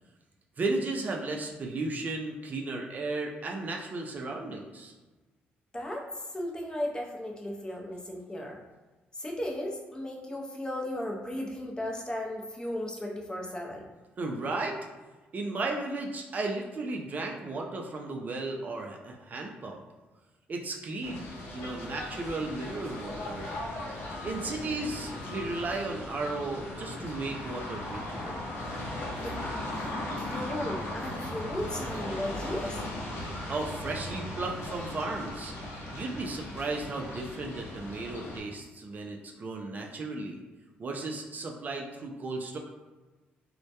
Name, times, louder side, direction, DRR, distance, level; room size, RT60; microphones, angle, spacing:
voice 1, 0.6-4.9 14.2-14.8 15.3-19.8 20.5-23.5 24.2-28.4 33.5-35.5 35.9-40.4 40.8-42.6, right 2 dB, 40° right, 1 dB, 0.3 m, -35 dB
voice 2, 5.7-6.1 6.3-8.6 9.2-13.8 29.2-29.4 29.7-29.9 30.2-32.8, left 1 dB, 20° left, -1 dB, 0.5 m, -35 dB
sound 1, 21.0-38.4, left 1 dB, 75° left, 0.5 m, -38 dB
2.1 x 2.1 x 2.8 m, 1.2 s
cardioid pair, 75°, 4 cm